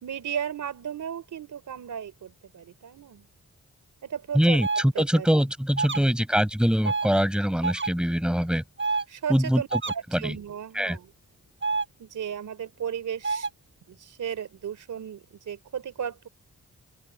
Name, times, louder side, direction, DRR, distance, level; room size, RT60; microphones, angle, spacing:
voice 1, 0.0-3.3 4.0-4.6 4.9-5.4 5.9-6.2 9.1-9.7 9.9-11.1 12.0-13.5 13.9-16.3, right 8 dB, 85° right, 3.9 m, -35 dB
voice 2, 4.3-8.6 9.3-9.8 10.1-10.3 10.7-11.0, equal, 5° right, 6.8 m, -23 dB
sound 1, 4.6-4.8 5.8-6.0 6.9-7.1 7.6-7.9 8.8-9.0 9.7-10.0 11.6-11.9 13.2-13.5, right 4 dB, 40° right, 7.1 m, -27 dB
open air
cardioid pair, 75°, 30 cm